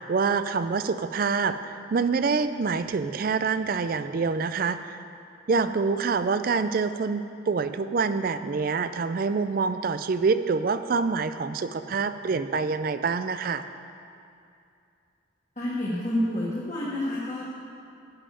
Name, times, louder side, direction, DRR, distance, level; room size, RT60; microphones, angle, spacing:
voice 1, 0.1-5.0 5.5-13.6, right 4 dB, 45° right, 11 dB, 0.4 m, -26 dB
voice 2, 15.6-17.5, left 1 dB, 40° left, -8 dB, 1.6 m, -28 dB
11.0 x 5.6 x 8.3 m, 2.5 s
head